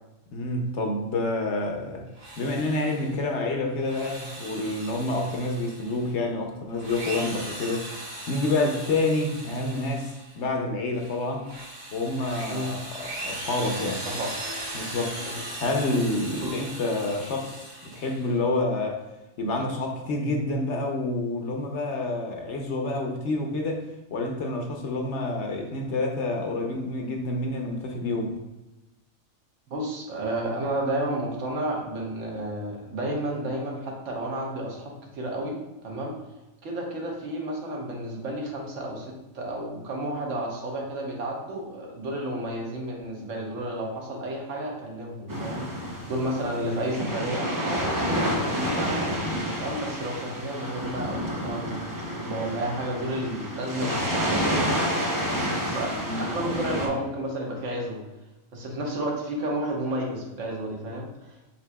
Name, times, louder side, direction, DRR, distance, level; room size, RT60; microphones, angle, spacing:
voice 1, 0.3-2.1 2.4-7.9 8.3-11.5 11.9-14.0 14.7-15.2 15.6-19.1 19.4-23.9 24.1-28.4 55.9-56.2, left 2 dB, 65° left, 2 dB, 0.9 m, -28 dB
Drill, 2.1-3.2 3.7-6.1 6.7-10.4 10.9-18.3, right 1 dB, 90° right, 1.6 m, -38 dB
voice 2, 12.5-12.8 13.9-14.3 15.2-15.4 16.4-16.5 29.7-35.6 35.8-36.1 36.6-49.2 49.6-54.9 55.4-55.9 56.3-58.0 58.5-61.4, right 1 dB, 70° right, 0 dB, 1.2 m, -31 dB
sound 1, 45.3-56.9, equal, 25° right, 0.4 m, -29 dB
6.8 x 2.7 x 2.2 m, 1.0 s
omnidirectional pair, 1.4 m